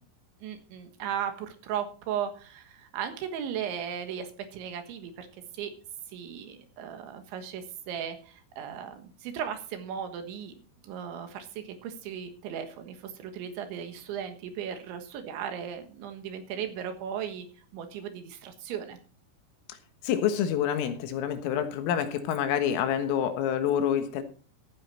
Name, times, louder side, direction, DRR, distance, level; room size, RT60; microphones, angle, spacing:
voice 1, 0.4-5.7 6.1-10.5 10.8-17.5 17.7-19.0, right 8 dB, 70° right, 3.6 m, -36 dB
voice 2, 20.0-24.2, left 9 dB, 80° left, 4.0 m, -27 dB
14.5 x 9.8 x 4.3 m
omnidirectional pair, 5.9 m